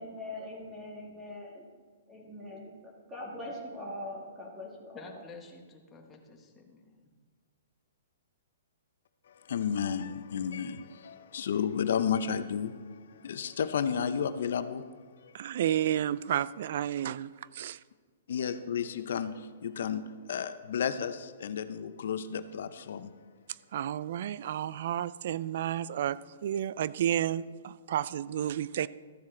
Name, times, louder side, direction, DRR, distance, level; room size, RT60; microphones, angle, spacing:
voice 1, 0.0-1.7 2.1-5.2, left 1 dB, 10° right, -3 dB, 1.9 m, -42 dB
voice 2, 4.9-7.0, left 4 dB, 15° left, 1 dB, 1.3 m, -50 dB
voice 3, 9.3-14.9 15.2-15.4 18.3-23.1, left 7 dB, 70° left, 12 dB, 0.6 m, -32 dB
voice 4, 15.3-17.8 23.7-28.9, right 10 dB, 55° right, 19 dB, 0.3 m, -31 dB
13.5 x 7.3 x 3.9 m, 1.5 s
hypercardioid pair, 155°, 0 cm